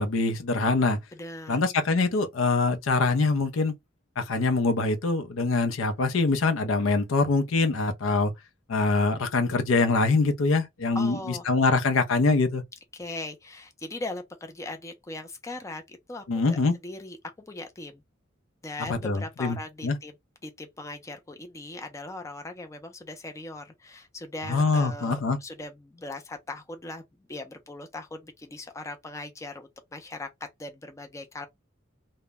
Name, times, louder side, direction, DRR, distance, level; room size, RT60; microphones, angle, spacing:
voice 1, 0.0-1.0 1.5-3.7 4.2-8.3 8.7-12.6 16.3-16.7 18.9-19.6 19.8-20.0 24.5-25.4, left 3 dB, 85° left, 0.5 m, -24 dB
voice 2, 1.1-1.6 10.9-11.4 12.9-16.6 16.8-17.2 17.5-18.0 18.6-20.1 20.4-27.0 27.3-30.3 30.6-31.5, left 2 dB, 15° left, 0.4 m, -39 dB
2.1 x 2.0 x 3.4 m
head